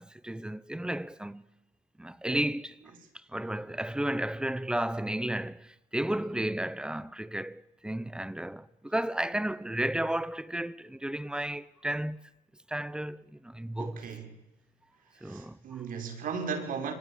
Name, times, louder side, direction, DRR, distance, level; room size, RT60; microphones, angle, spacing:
voice 1, 0.0-1.4 2.0-2.8 3.3-12.2 12.7-14.1 15.2-15.6, right 1 dB, 5° right, 1.0 m, -33 dB
voice 2, 13.8-14.3 15.2-16.9, right 6 dB, 55° right, 5.6 m, -36 dB
26.5 x 24.0 x 9.1 m
cardioid pair, 135°, 17 cm